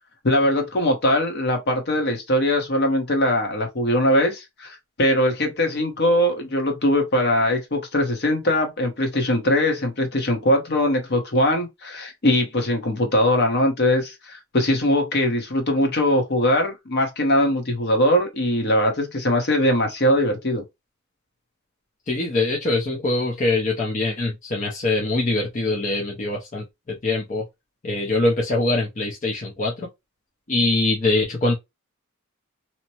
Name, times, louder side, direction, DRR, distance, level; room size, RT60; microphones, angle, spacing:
voice 1, 0.2-20.6, left 1 dB, 55° left, 1.0 m, -21 dB
voice 2, 22.1-27.4 27.8-29.9 30.5-31.6, left 2 dB, 35° left, 0.6 m, -23 dB
2.9 x 2.1 x 2.8 m
head